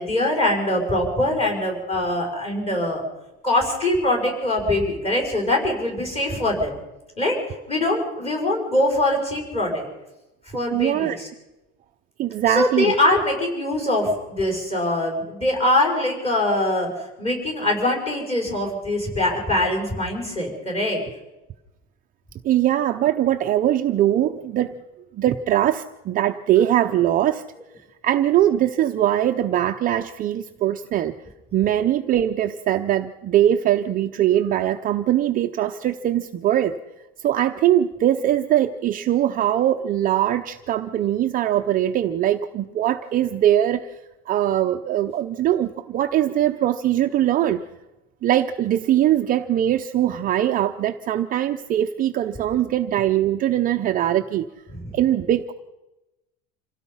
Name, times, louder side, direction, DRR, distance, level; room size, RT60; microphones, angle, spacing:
voice 1, 0.0-3.0 3.4-6.7 7.2-7.4 7.7-9.9 10.5-11.3 12.4-21.0 54.7-55.0, left 1 dB, 20° left, 2 dB, 6.0 m, -23 dB
voice 2, 10.7-11.2 12.2-12.9 22.4-24.8 25.1-27.4 28.0-31.1 31.5-36.8 37.2-43.9 44.3-47.6 48.2-54.5 54.9-55.5, right 12 dB, 30° right, 5 dB, 0.6 m, -21 dB
27.0 x 17.0 x 5.6 m, 0.99 s
cardioid pair, 175°, 31 cm